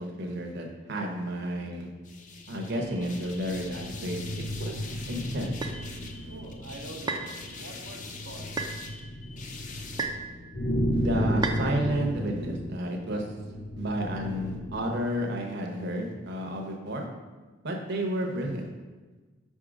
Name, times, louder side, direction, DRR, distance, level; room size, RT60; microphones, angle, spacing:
voice 1, 0.0-1.9 2.5-4.7 5.1-5.5 10.9-13.3 13.8-17.1 17.6-18.7, right 1 dB, 55° right, 2 dB, 0.8 m, -31 dB
sound 1, 2.0-10.1, left 4 dB, 40° left, 0.6 m, -44 dB
sound 2, 2.5-15.1, equal, 65° left, 1.8 m, -34 dB
sound 3, 5.6-5.8 7.1-7.3 8.6-8.8 10.0-10.3 11.4-11.6, right 4 dB, 20° right, 0.4 m, -31 dB
voice 2, 6.3-8.6, right 2 dB, 85° right, 1 dB, 0.7 m, -45 dB
5.5 x 3.6 x 5.0 m, 1.3 s
head